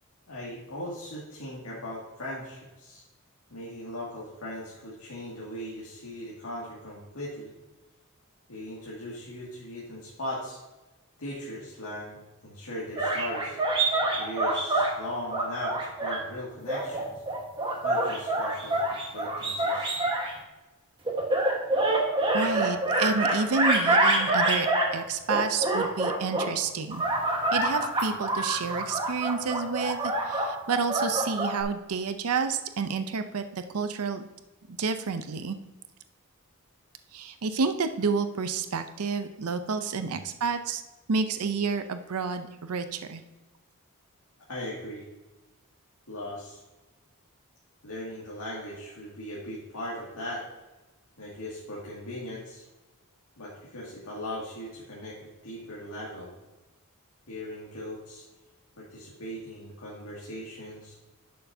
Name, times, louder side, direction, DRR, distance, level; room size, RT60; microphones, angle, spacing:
voice 1, 0.3-3.0 3.5-7.5 8.5-10.6 11.2-12.2 12.4-13.6 14.1-17.2 17.8-18.8 19.1-20.0 39.9-40.1 44.5-45.0 46.1-46.6 47.8-50.4 51.2-52.6 53.4-56.3 57.3-58.2 58.8-60.9, left 1 dB, 80° left, -7 dB, 2.2 m, -39 dB
sound 1, 13.0-14.9 15.3-16.2 16.7-20.3 21.1-24.9 25.3-26.5 26.9-31.6, right 2 dB, 25° right, 1.3 m, -26 dB
voice 2, 22.3-27.0 27.5-34.3 34.7-35.6 37.1-40.8 41.1-43.2, right 5 dB, 75° right, 9 dB, 0.6 m, -30 dB
11.0 x 6.6 x 2.7 m, 1.1 s
head